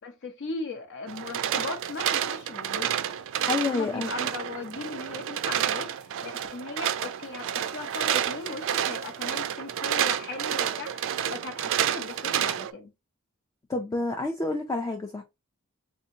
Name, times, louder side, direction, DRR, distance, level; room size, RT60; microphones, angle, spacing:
voice 1, 0.0-3.1 3.7-12.9, left 3 dB, 55° left, 0.7 m, -38 dB
sound 1, 1.1-12.7, right 10 dB, 60° right, 0.3 m, -29 dB
voice 2, 3.5-4.1 13.7-15.2, left 3 dB, 15° left, 0.3 m, -28 dB
3.4 x 2.7 x 2.7 m
head